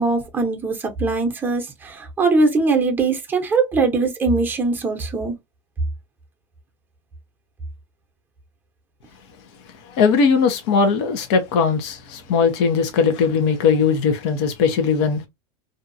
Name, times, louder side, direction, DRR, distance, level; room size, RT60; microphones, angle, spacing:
voice 1, 0.0-5.3, right 3 dB, 15° right, 0.8 m, -21 dB
voice 2, 9.9-15.2, left 5 dB, 65° left, 0.9 m, -19 dB
2.7 x 2.4 x 2.6 m
supercardioid pair, 135°, 15 cm